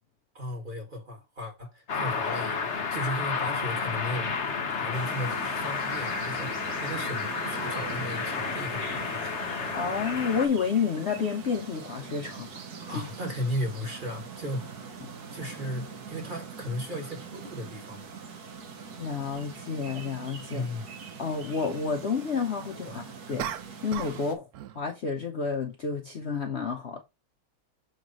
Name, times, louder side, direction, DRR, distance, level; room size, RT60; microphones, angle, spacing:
voice 1, 0.3-9.6 12.9-15.0 15.3-18.2 20.5-20.8 22.8-23.4, left 1 dB, 25° right, 1.8 m, -36 dB
sound 1, 1.9-10.5, left 5 dB, 45° left, 1.1 m, -31 dB
sound 2, 4.9-24.3, right 5 dB, 55° right, 1.5 m, -43 dB
voice 2, 9.7-12.5 12.8-13.1 19.0-20.7 21.2-23.0 23.3-23.5 23.8-24.5 24.8-27.0, left 5 dB, 75° left, 0.6 m, -30 dB
sound 3, 23.4-24.3 24.5-24.9, right 10 dB, 80° right, 0.8 m, -36 dB
7.0 x 3.2 x 5.3 m
omnidirectional pair, 2.2 m